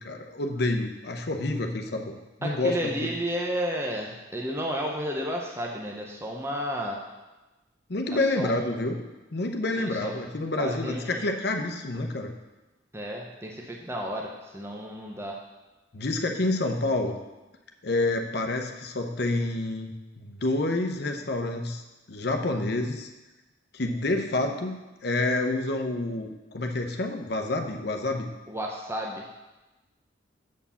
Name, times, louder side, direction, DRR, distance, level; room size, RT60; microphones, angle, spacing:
voice 1, 0.0-3.1 7.9-9.0 9.3-12.3 15.9-17.2 17.8-19.9 20.2-21.8 22.1-23.1 23.7-28.3, left 2 dB, 60° left, 4 dB, 0.8 m, -28 dB
voice 2, 2.4-7.0 8.2-8.7 9.8-10.1 10.6-11.2 12.9-15.4 28.5-29.3, equal, 15° right, 0 dB, 0.6 m, -32 dB
7.4 x 4.5 x 7.0 m, 1.1 s
head